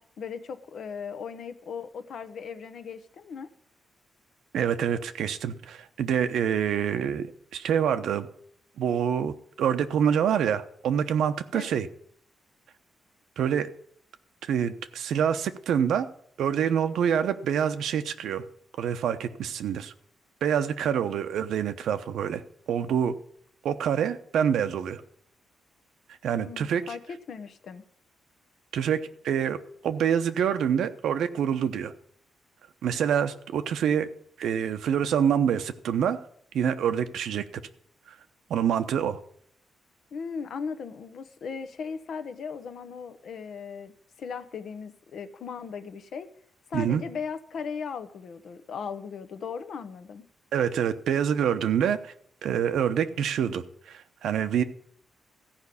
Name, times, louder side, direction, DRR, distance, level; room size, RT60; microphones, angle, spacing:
voice 1, 0.0-3.5 11.5-11.8 26.3-27.8 40.1-46.3 46.7-50.3, left 6 dB, 65° left, 11 dB, 0.9 m, -37 dB
voice 2, 4.5-8.3 8.8-11.9 13.4-13.7 14.4-16.1 16.4-18.4 18.8-19.9 20.4-22.4 22.7-23.1 23.6-25.0 26.2-26.8 28.7-29.6 29.8-31.9 32.8-34.1 34.4-36.2 36.5-37.4 38.5-39.2 46.7-47.0 50.5-52.1 52.4-54.6, right 8 dB, 85° right, 9 dB, 0.9 m, -26 dB
14.5 x 5.3 x 8.4 m, 0.62 s
cardioid pair, 125°, 0 cm